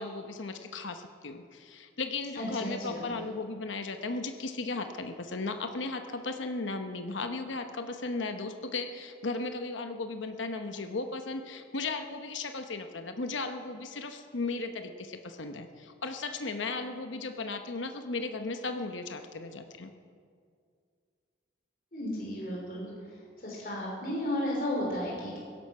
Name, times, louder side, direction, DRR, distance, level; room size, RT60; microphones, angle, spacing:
voice 1, 0.0-19.9, left 3 dB, 90° left, 7 dB, 1.0 m, -36 dB
voice 2, 2.3-3.1 21.9-22.9 23.4-25.4, left 1 dB, 45° left, -4 dB, 3.2 m, -33 dB
16.5 x 12.5 x 5.6 m, 2.2 s
head